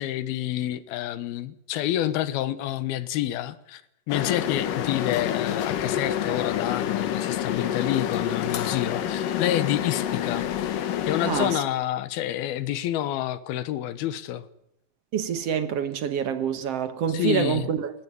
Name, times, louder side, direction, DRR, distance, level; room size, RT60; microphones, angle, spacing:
voice 1, 0.0-3.8 4.1-10.5 11.1-14.5 17.1-17.7, left 13 dB, 85° left, 3.0 m, -28 dB
sound 1, 4.1-11.6, left 10 dB, 70° left, 2.8 m, -28 dB
voice 2, 11.2-11.6 15.1-17.9, right 8 dB, 60° right, 1.6 m, -26 dB
18.0 x 17.0 x 9.7 m
omnidirectional pair, 4.3 m